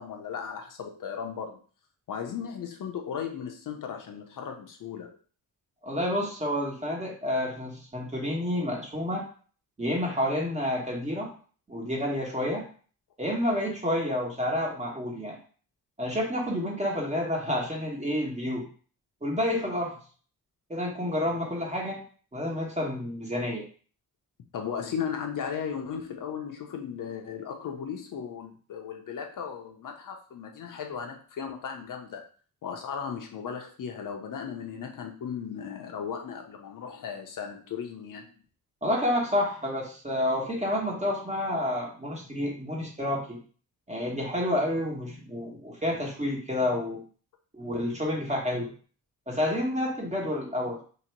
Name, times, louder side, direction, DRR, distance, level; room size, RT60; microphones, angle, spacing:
voice 1, 0.0-1.6 2.1-5.1 24.5-32.2 32.6-38.3, left 7 dB, 60° left, 3 dB, 0.8 m, -36 dB
voice 2, 5.8-9.3 9.8-11.3 11.7-12.7 13.2-15.4 16.0-18.7 19.2-20.0 20.7-22.0 22.3-23.6 38.8-43.4 43.9-47.0 47.5-48.7 49.3-50.8, left 1 dB, 20° right, -2 dB, 1.2 m, -29 dB
3.1 x 2.9 x 4.4 m, 0.41 s
wide cardioid pair, 135°, 36 cm